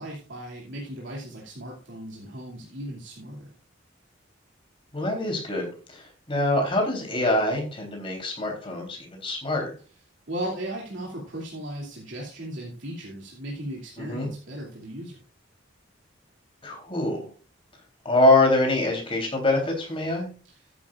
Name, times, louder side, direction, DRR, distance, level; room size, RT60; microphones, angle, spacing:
voice 1, 0.0-3.5 10.3-15.2, right 1 dB, 70° right, -3 dB, 2.8 m, -36 dB
voice 2, 4.9-9.7 14.0-14.3 16.6-17.3 18.1-20.3, left 2 dB, 25° left, 1 dB, 3.5 m, -24 dB
13.5 x 9.8 x 2.5 m, 0.36 s
head